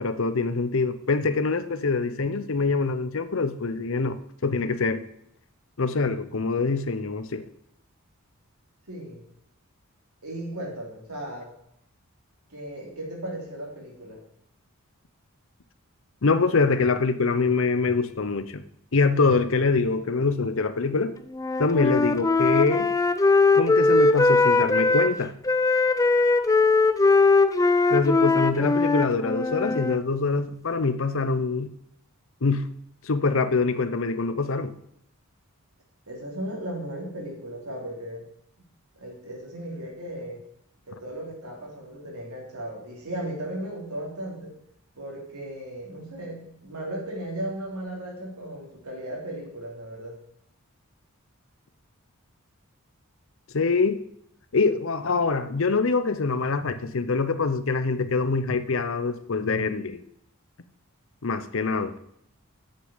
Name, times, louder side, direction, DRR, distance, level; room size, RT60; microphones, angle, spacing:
voice 1, 0.0-5.0 5.8-7.4 16.2-18.6 18.9-21.1 21.6-22.9 23.5-25.3 27.9-31.7 32.4-32.7 33.0-34.7 53.5-54.0 54.5-60.1 61.2-61.9, left 4 dB, 60° left, 0.7 m, -24 dB
voice 2, 8.9-9.2 10.2-11.5 12.5-14.2 36.1-38.2 38.9-40.4 40.9-44.5 45.0-50.2, right 1 dB, 90° right, 3.3 m, -36 dB
Wind instrument woodwind instrument, 21.3-25.1 25.5-30.0, left 3 dB, 15° left, 0.4 m, -20 dB
8.3 x 6.6 x 7.2 m
head